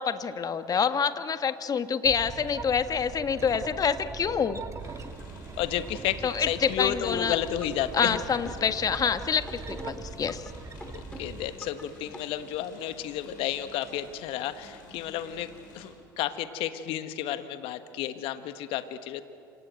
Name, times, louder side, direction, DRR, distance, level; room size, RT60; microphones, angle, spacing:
voice 1, 0.0-4.6 6.2-7.4 7.9-10.4, left 6 dB, 35° left, 10 dB, 1.6 m, -27 dB
sound 1, 2.0-11.5, right 4 dB, 30° right, 2.3 m, -41 dB
sound 2, 4.8-15.9, left 2 dB, 85° left, 6.8 m, -51 dB
voice 2, 5.6-8.2 10.9-19.2, left 11 dB, 65° left, 10 dB, 1.5 m, -32 dB
sound 3, 7.6-7.8 8.1-9.2 9.5-10.5 10.8-11.8 12.1-12.2, left 1 dB, 10° left, 3.9 m, -44 dB
27.5 x 26.5 x 7.9 m, 2.4 s
hypercardioid pair, 65°, 10 cm